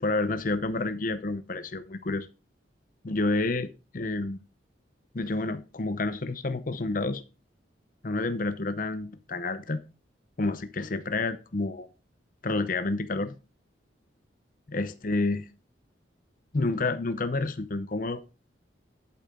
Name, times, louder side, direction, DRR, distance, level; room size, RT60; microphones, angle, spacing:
voice 1, 0.0-2.3 3.0-4.4 5.1-7.2 8.0-9.9 10.4-11.9 12.4-13.4 14.7-15.5 16.5-18.2, left 2 dB, 45° left, 0.7 m, -29 dB
8.4 x 8.1 x 3.7 m
head